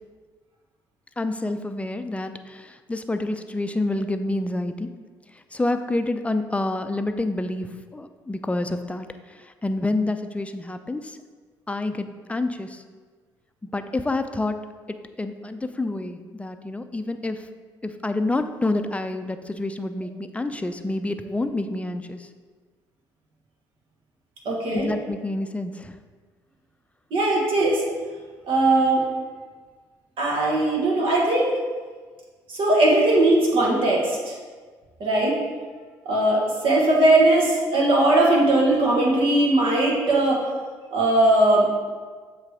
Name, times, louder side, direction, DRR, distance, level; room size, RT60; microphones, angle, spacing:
voice 1, 1.2-4.9 5.5-11.2 11.7-12.8 13.7-14.6 15.2-17.5 17.8-22.3 24.7-26.0, left 2 dB, 15° left, 8 dB, 0.5 m, -28 dB
voice 2, 24.5-24.9 27.1-27.8 28.5-29.1 30.2-31.5 32.5-34.4 35.0-35.4 36.1-40.4 40.9-41.7, right 2 dB, 65° right, -2 dB, 1.6 m, -19 dB
7.4 x 3.2 x 4.9 m, 1.5 s
hypercardioid pair, 60°, 10 cm